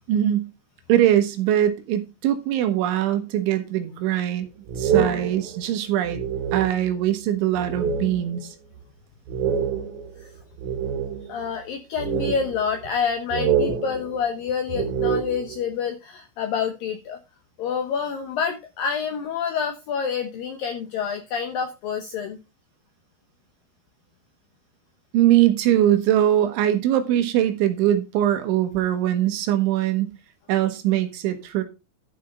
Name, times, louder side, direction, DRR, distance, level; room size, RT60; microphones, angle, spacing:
voice 1, 0.1-0.5 0.9-4.5 4.8-6.2 6.5-8.6 25.1-30.1 30.5-31.6, right 12 dB, 80° right, 3.6 m, -21 dB
sound 1, 4.7-7.1 7.5-8.4 8.7-8.8 9.3-11.5 12.0-13.0 13.3-15.7, right 7 dB, 60° right, 2.9 m, -26 dB
voice 2, 11.3-17.2 17.6-22.4, left 6 dB, 80° left, 2.0 m, -28 dB
12.0 x 5.8 x 5.1 m
omnidirectional pair, 5.5 m